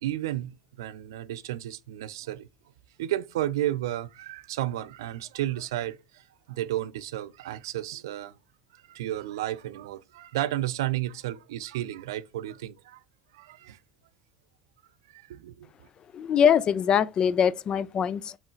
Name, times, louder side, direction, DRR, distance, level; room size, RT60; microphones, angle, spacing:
voice 1, 0.0-2.5 3.0-8.3 8.9-13.0 13.3-13.8 15.1-15.7, right 13 dB, 80° right, 0.3 m, -32 dB
voice 2, 16.1-18.4, left 8 dB, 40° left, 0.3 m, -23 dB
4.4 x 3.2 x 3.1 m
hypercardioid pair, 80°, 2 cm